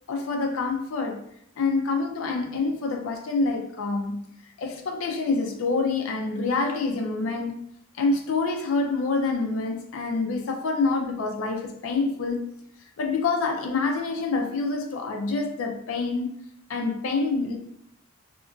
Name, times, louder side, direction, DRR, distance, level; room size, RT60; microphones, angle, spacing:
voice 1, 0.1-1.2 1.6-7.6 8.0-12.5 13.0-16.3 16.7-17.6, left 3 dB, 80° left, 0.4 m, -27 dB
2.8 x 2.5 x 2.3 m
head